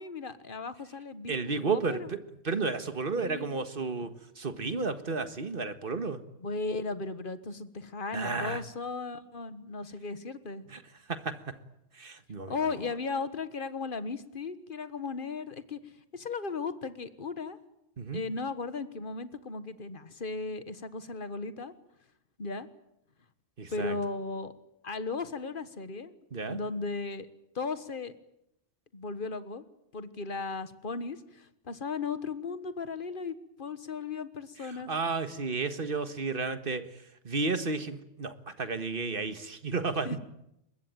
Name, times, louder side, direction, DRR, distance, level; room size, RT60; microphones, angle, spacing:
voice 1, 0.0-2.1 3.2-3.5 6.4-10.7 12.5-15.8 16.1-17.6 18.1-21.7 22.4-22.7 23.7-24.5 24.8-26.2 26.5-27.3 27.5-28.1 28.9-29.6 29.9-34.9 40.0-40.2, left 4 dB, 45° left, 13 dB, 1.6 m, -36 dB
voice 2, 1.3-6.2 8.1-8.6 10.7-10.8 11.1-11.6 11.9-12.6 18.0-18.2 23.6-24.0 26.3-26.6 34.6-36.9 37.2-40.2, right 4 dB, 45° right, 11 dB, 1.7 m, -32 dB
23.5 x 21.0 x 9.2 m, 0.81 s
omnidirectional pair, 1.2 m